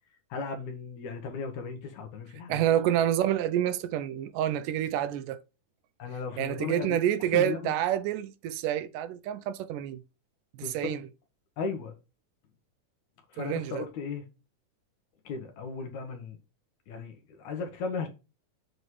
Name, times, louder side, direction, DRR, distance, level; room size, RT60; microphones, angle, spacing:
voice 1, 0.3-2.6 6.0-7.0 7.3-7.7 10.6-11.0 11.6-12.0 13.3-14.2 15.3-16.4 16.9-18.1, left 4 dB, 70° left, 2.4 m, -36 dB
voice 2, 2.5-5.4 6.4-10.0 10.6-11.0 13.4-13.8, right 11 dB, 80° right, 2.1 m, -28 dB
7.8 x 5.5 x 3.1 m
omnidirectional pair, 3.8 m